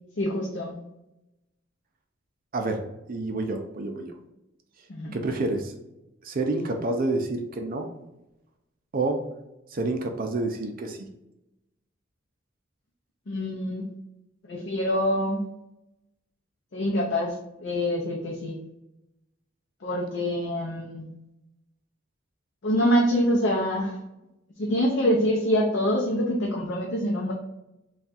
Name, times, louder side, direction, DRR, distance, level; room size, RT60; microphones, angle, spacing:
voice 1, 0.2-0.8 4.9-5.1 13.3-13.8 14.4-15.4 16.7-17.3 17.6-18.6 19.8-21.1 22.6-24.0 24.6-27.3, equal, 60° left, -2 dB, 0.6 m, -25 dB
voice 2, 2.5-4.1 5.1-5.7 6.2-7.9 8.9-9.2 9.7-11.1, right 2 dB, 45° right, 4 dB, 0.5 m, -28 dB
3.4 x 2.4 x 4.1 m, 0.91 s
head